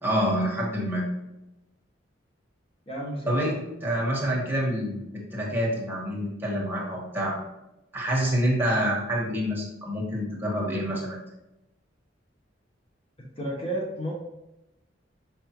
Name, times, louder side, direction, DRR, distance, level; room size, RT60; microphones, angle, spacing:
voice 1, 0.0-1.0 3.3-7.4 7.9-11.2, equal, 10° right, -4 dB, 1.6 m, -27 dB
voice 2, 2.9-3.5 13.4-14.1, right 1 dB, 30° left, -2 dB, 1.0 m, -32 dB
6.4 x 5.1 x 3.1 m, 0.94 s
head